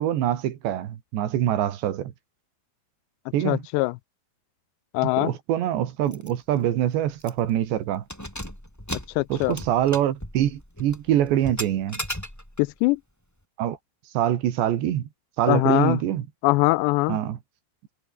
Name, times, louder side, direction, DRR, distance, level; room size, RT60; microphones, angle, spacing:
voice 1, 0.0-2.1 3.3-3.6 5.0-8.1 9.3-12.0 13.6-13.8 14.1-15.1 15.4-16.3 17.1-17.4, right 11 dB, 90° right, 4.2 m, -24 dB
voice 2, 3.5-4.0 4.9-5.3 9.2-9.6 12.6-13.0 15.5-16.0 16.4-17.2, left 23 dB, 85° left, 2.7 m, -22 dB
Keys jangling, 6.1-6.3 6.6-6.7 7.2-7.6 8.0-12.7, equal, 5° left, 7.0 m, -36 dB
omnidirectional pair, 4.9 m